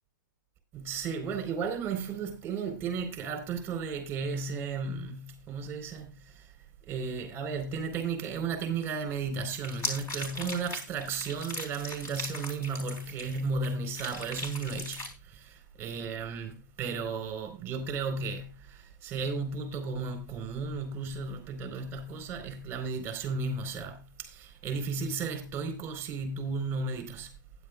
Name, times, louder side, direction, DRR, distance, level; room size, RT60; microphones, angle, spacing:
voice 1, 0.7-6.5 6.9-27.3, right 4 dB, 20° right, 4.2 m, -34 dB
sound 1, 9.5-13.6 13.9-15.1, left 1 dB, 25° left, 3.7 m, -38 dB
15.5 x 10.5 x 2.4 m
hypercardioid pair, 130°, 11 cm